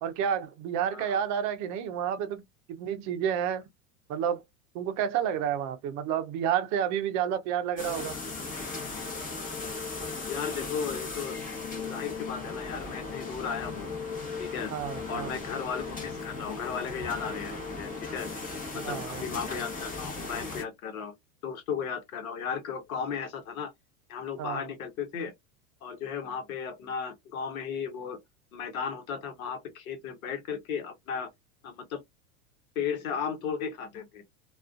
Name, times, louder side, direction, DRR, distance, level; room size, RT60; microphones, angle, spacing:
voice 1, 0.0-2.4 2.7-3.6 4.1-4.4 4.7-8.2 14.7-15.4 18.8-19.2 24.4-24.7, right 9 dB, 45° right, 0.5 m, -30 dB
voice 2, 0.9-1.2 10.3-11.4 11.8-13.9 14.4-14.7 15.1-18.3 18.7-21.2 21.4-23.7 24.1-25.3 25.8-28.2 28.5-31.3 31.6-32.0 32.7-34.2, left 6 dB, 80° left, 1.0 m, -35 dB
sound 1, 7.8-20.6, left 3 dB, 20° left, 0.9 m, -37 dB
2.4 x 2.3 x 2.3 m
hypercardioid pair, 105°, 42 cm